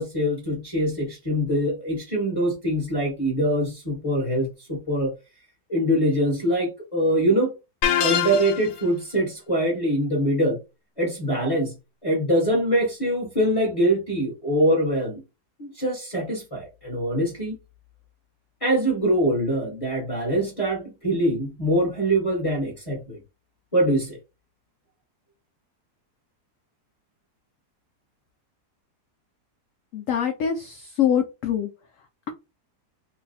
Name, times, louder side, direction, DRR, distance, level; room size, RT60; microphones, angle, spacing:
voice 1, 0.0-5.1 5.7-7.5 8.0-10.6 11.0-11.7 12.0-15.2 15.6-17.5 18.6-23.2 23.7-24.2, right 1 dB, 20° left, 1.1 m, -23 dB
sound 1, 7.8-8.9, left 9 dB, 90° left, 1.3 m, -23 dB
voice 2, 29.9-31.7, left 9 dB, 75° left, 0.7 m, -24 dB
3.2 x 2.2 x 4.0 m
omnidirectional pair, 1.9 m